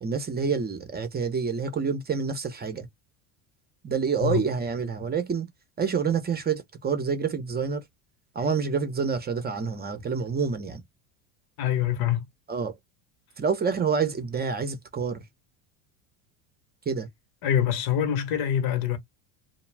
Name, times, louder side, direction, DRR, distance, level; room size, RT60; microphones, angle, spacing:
voice 1, 0.0-2.9 3.8-5.5 5.8-7.8 8.3-10.8 12.5-12.8 13.4-15.2 16.9-17.1, right 5 dB, 25° right, 0.7 m, -27 dB
voice 2, 11.6-12.3 17.4-19.0, left 10 dB, 60° left, 1.0 m, -25 dB
2.3 x 2.1 x 3.3 m
hypercardioid pair, 90°, 41 cm